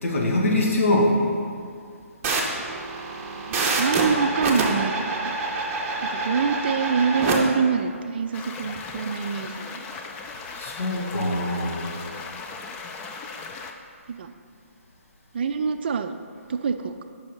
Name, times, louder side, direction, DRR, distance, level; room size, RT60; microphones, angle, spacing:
voice 1, 0.0-1.1 10.5-11.9, left 1 dB, 60° left, -2 dB, 1.9 m, -23 dB
sound 1, 2.2-7.4, right 3 dB, 20° right, 1.0 m, -26 dB
voice 2, 3.0-5.4 6.0-9.9 14.1-14.3 15.3-16.1 16.5-17.0, right 6 dB, 45° right, 8 dB, 0.4 m, -26 dB
sound 2, 8.3-13.7, left 4 dB, 15° left, 0.4 m, -37 dB
7.8 x 5.5 x 5.6 m, 2.2 s
figure-of-eight pair, 140°, 8 cm